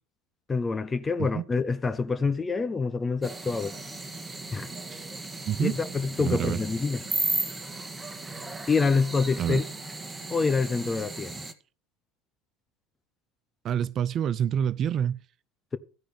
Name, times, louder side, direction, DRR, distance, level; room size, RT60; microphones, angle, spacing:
voice 1, 0.5-3.7 4.5-4.7 5.6-7.0 8.7-9.6 10.3-11.4, left 4 dB, 25° left, 1.0 m, -26 dB
sound 1, 3.2-11.5, right 2 dB, 10° right, 1.5 m, -35 dB
voice 2, 6.2-6.6 9.4-9.6 13.6-15.2, right 9 dB, 45° right, 0.5 m, -27 dB
13.5 x 4.9 x 7.7 m
hypercardioid pair, 85°, 0 cm